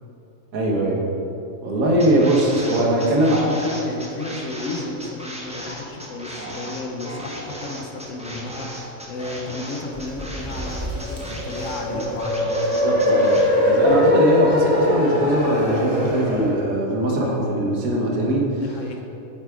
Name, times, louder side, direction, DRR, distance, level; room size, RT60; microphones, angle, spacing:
voice 1, 0.5-1.1 1.6-3.5 11.9-12.0 12.8-13.4 13.6-18.5, right 1 dB, 80° right, -2 dB, 1.5 m, -21 dB
sound 1, 2.0-13.5, right 1 dB, 10° right, 0.5 m, -36 dB
voice 2, 2.4-13.6 18.5-19.0, left 3 dB, 70° left, 3 dB, 1.0 m, -33 dB
sound 2, 9.9-16.5, left 1 dB, 25° right, 1.0 m, -21 dB
8.1 x 3.4 x 4.8 m, 2.9 s
omnidirectional pair, 1.5 m